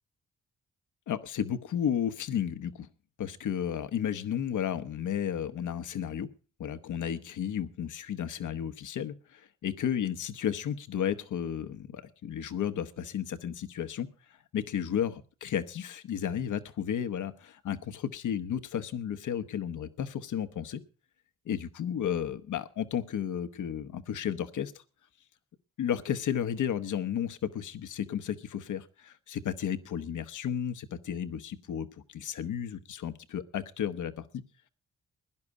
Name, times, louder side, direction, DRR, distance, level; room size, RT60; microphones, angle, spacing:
voice 1, 1.1-2.9 3.2-6.3 6.6-14.1 14.5-20.8 21.5-24.7 25.8-34.4, left 9 dB, 70° left, 12 dB, 1.1 m, -33 dB
16.5 x 11.0 x 4.8 m, 0.34 s
supercardioid pair, 45°, 31 cm